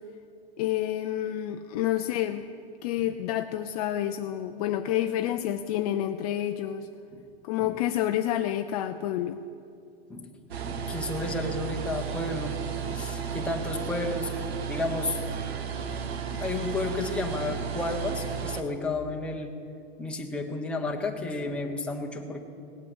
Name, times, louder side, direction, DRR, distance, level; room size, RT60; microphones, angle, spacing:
voice 1, 0.6-2.4 2.8-6.9 7.4-9.4, left 12 dB, 40° left, 7 dB, 0.5 m, -29 dB
sound 1, 10.5-18.6, right 7 dB, 75° right, 1.3 m, -33 dB
voice 2, 10.6-12.6 12.9-14.3 14.7-15.2 15.7-19.5 20.0-22.4, left 2 dB, 5° left, 0 dB, 1.1 m, -32 dB
18.5 x 8.5 x 8.0 m, 2.5 s
hypercardioid pair, 140°, 32 cm